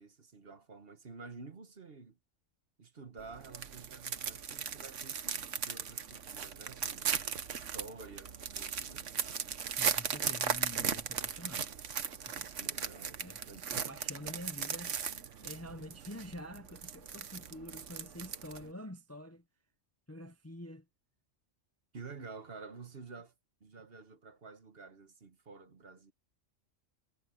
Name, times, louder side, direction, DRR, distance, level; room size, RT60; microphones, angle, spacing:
voice 1, 0.0-2.2 2.8-7.1 7.5-9.1 12.6-13.6 21.9-23.3 23.6-26.1, right 4 dB, 50° right, 1.6 m, -50 dB
sound 1, 3.2-18.7, right 7 dB, 75° right, 1.4 m, -37 dB
voice 2, 9.8-11.7 12.3-12.5 13.2-13.4 13.7-19.4 20.1-20.8, left 1 dB, 15° left, 0.7 m, -47 dB
omnidirectional pair, 1.3 m